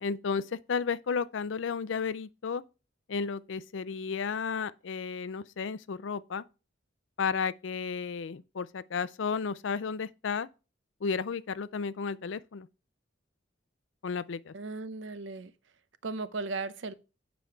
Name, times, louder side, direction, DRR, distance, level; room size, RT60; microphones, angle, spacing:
voice 1, 0.0-2.6 3.1-6.4 7.2-10.5 11.0-12.7 14.0-14.5, left 5 dB, 75° left, 0.5 m, -33 dB
voice 2, 14.5-15.5 16.0-16.9, right 3 dB, 70° right, 0.7 m, -36 dB
8.5 x 5.2 x 4.6 m
head